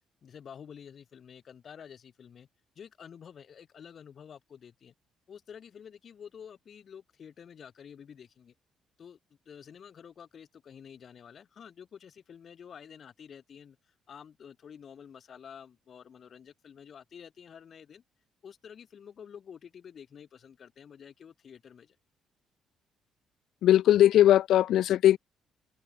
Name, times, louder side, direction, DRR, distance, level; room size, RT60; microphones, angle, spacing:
voice 1, 0.2-2.5 2.8-4.9 5.3-8.5 9.0-9.2 9.5-18.0 18.4-22.0, left 7 dB, 40° left, 5.8 m, -49 dB
voice 2, 23.6-25.2, left 12 dB, 70° left, 0.6 m, -20 dB
cardioid pair, 150°, 0 cm